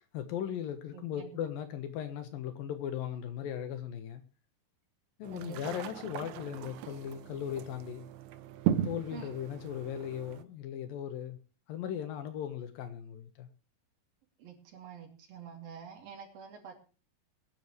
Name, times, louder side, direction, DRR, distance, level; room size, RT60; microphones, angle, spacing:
voice 1, 0.0-4.2 5.2-8.0 8.7-11.4 11.7-13.5, left 10 dB, 85° left, 8 dB, 3.1 m, -38 dB
voice 2, 0.9-1.3 5.3-5.7 9.1-9.3 14.4-16.7, right 7 dB, 85° right, 0 dB, 4.7 m, -47 dB
sound 1, 5.2-10.4, right 11 dB, 70° right, 2.0 m, -37 dB
23.0 x 10.5 x 3.2 m, 0.35 s
omnidirectional pair, 4.0 m